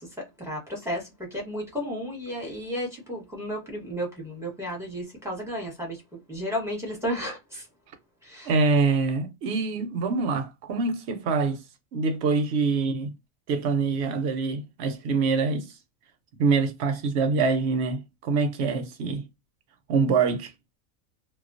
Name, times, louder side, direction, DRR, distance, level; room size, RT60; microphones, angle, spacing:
voice 1, 0.0-6.0 6.3-7.7 8.2-8.5, equal, 5° right, 0.8 m, -33 dB
voice 2, 8.5-11.6 11.9-13.1 13.5-15.7 16.4-19.2 19.9-20.5, right 4 dB, 65° right, 0.8 m, -25 dB
2.2 x 2.2 x 2.4 m
omnidirectional pair, 1.4 m